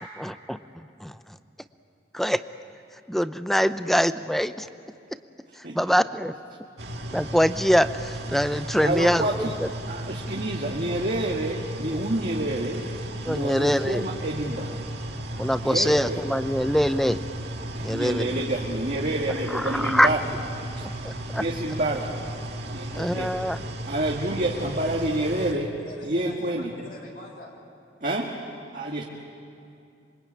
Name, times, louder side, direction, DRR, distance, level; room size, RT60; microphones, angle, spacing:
voice 1, 0.2-0.6 1.0-1.1 2.1-2.4 3.1-4.7 5.7-6.3 7.1-9.7 13.3-14.1 15.4-17.2 17.8-18.3 19.5-20.1 20.8-21.4 22.9-23.6, equal, ahead, 12 dB, 0.6 m, -24 dB
voice 2, 5.6-5.9 8.8-9.5 9.9-12.8 13.2-14.8 15.6-16.3 17.7-20.2 20.8-20.9 21.3-22.1 22.7-23.4 23.8-25.7 26.0-26.7 28.0-28.3 28.7-29.0, right 1 dB, 50° right, -1 dB, 1.8 m, -28 dB
sound 1, 6.8-25.5, right 1 dB, 65° right, 2.3 m, -35 dB
voice 3, 25.9-27.6 29.0-29.1, left 1 dB, 55° left, -1 dB, 3.3 m, -44 dB
26.5 x 23.5 x 8.7 m, 2.6 s
head